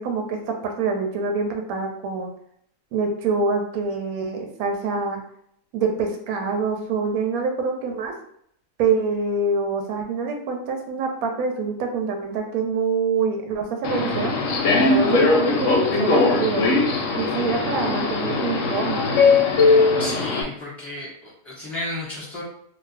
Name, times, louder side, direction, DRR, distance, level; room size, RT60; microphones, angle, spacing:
voice 1, 0.0-2.3 2.9-5.2 5.7-8.1 8.8-14.3 14.7-16.7 17.1-19.0, right 4 dB, 70° right, 2 dB, 1.0 m, -25 dB
Subway metro underground, 13.8-20.4, left 3 dB, 70° left, 0.8 m, -20 dB
voice 2, 20.0-22.4, left 1 dB, ahead, -7 dB, 1.0 m, -33 dB
2.5 x 2.3 x 3.2 m, 0.68 s
omnidirectional pair, 1.6 m